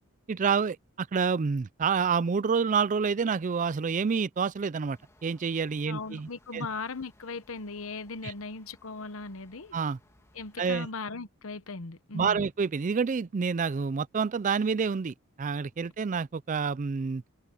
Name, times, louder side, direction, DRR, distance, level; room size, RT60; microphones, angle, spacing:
voice 1, 0.3-6.7 8.2-8.3 9.7-10.0 10.6-10.9 12.1-17.2, right 5 dB, 35° right, 0.4 m, -28 dB
sound 1, 4.8-10.9, left 1 dB, 15° left, 2.5 m, -63 dB
voice 2, 5.9-9.8 10.3-12.4, left 4 dB, 65° left, 1.0 m, -38 dB
head